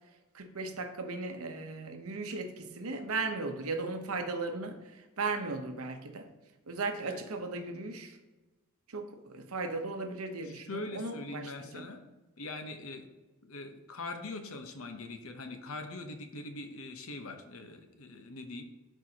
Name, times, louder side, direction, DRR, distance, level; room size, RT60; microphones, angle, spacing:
voice 1, 0.3-4.8 5.2-6.3 6.7-8.2 8.9-11.9, right 3 dB, 75° right, 6 dB, 0.9 m, -36 dB
voice 2, 10.4-12.0 12.4-13.1 13.4-18.6, left 2 dB, 65° left, 6 dB, 0.9 m, -42 dB
12.0 x 4.5 x 2.9 m, 1.1 s
head